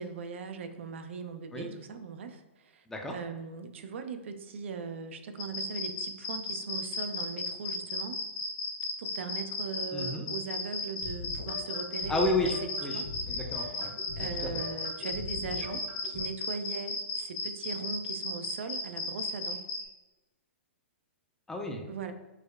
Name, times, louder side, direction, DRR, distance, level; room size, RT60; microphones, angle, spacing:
voice 1, 0.0-8.2 9.0-13.1 13.6-13.7 14.2-19.6 21.9-22.1, right 5 dB, 70° right, 8 dB, 0.3 m, -39 dB
sound 1, 5.4-19.8, left 3 dB, 45° left, 0.8 m, -34 dB
voice 2, 9.9-10.3 12.1-13.0 13.3-14.6 21.5-21.8, left 1 dB, 5° left, 2 dB, 0.4 m, -32 dB
sound 2, 11.0-16.2, left 3 dB, 75° left, 1.4 m, -41 dB
4.6 x 2.1 x 2.3 m, 1.1 s
hypercardioid pair, 130°, 7 cm